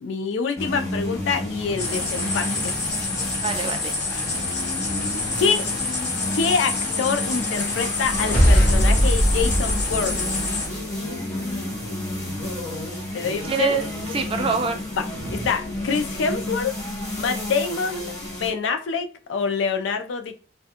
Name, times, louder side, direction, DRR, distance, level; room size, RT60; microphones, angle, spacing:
voice 1, 0.0-2.7 4.1-4.2 5.4-5.7 6.3-10.2 13.1-13.8 14.9-15.0 15.3-16.8 17.2-20.4, left 5 dB, 85° left, 0.4 m, -26 dB
sound 1, 0.5-18.5, left 1 dB, 15° left, 0.7 m, -31 dB
sound 2, 1.8-10.7, left 3 dB, 65° left, 1.0 m, -28 dB
voice 2, 3.4-3.9 4.2-4.3 4.8-4.9 13.1-14.8 15.2-15.5, right 5 dB, 30° right, 0.3 m, -27 dB
sound 3, 8.0-10.8, equal, 50° left, 0.7 m, -20 dB
2.4 x 2.1 x 2.8 m
head